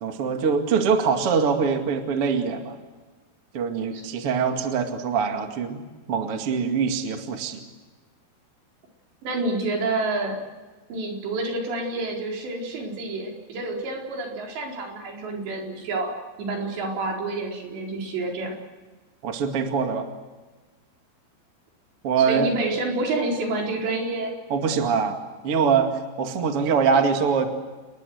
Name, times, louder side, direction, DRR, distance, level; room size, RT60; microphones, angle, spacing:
voice 1, 0.0-2.8 3.5-7.6 19.2-20.1 22.0-22.5 24.5-25.2 25.4-27.5, right 6 dB, 40° right, 5 dB, 2.3 m, -23 dB
voice 2, 9.2-10.4 10.9-16.1 16.4-18.6 22.2-24.3, right 2 dB, 70° right, 0 dB, 6.6 m, -28 dB
30.0 x 20.5 x 8.0 m, 1.3 s
omnidirectional pair, 5.2 m